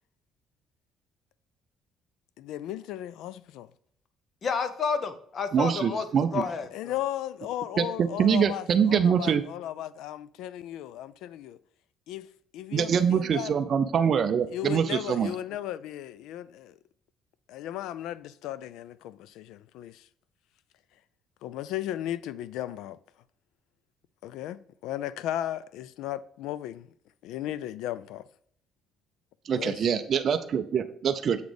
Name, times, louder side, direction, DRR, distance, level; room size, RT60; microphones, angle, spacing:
voice 1, 2.4-3.7 6.7-11.6 12.1-12.3 12.5-13.5 14.5-16.7 17.5-20.0 21.4-23.0 24.2-26.9 27.2-28.2 29.5-29.8, left 12 dB, 85° left, 0.3 m, -36 dB
voice 2, 4.4-6.1 6.3-6.9, left 5 dB, 35° left, 0.6 m, -30 dB
voice 3, 5.5-6.4 7.8-9.4 12.7-15.3 29.5-31.4, right 7 dB, 40° right, 0.4 m, -24 dB
7.0 x 4.1 x 4.9 m
cardioid pair, 160°, 0 cm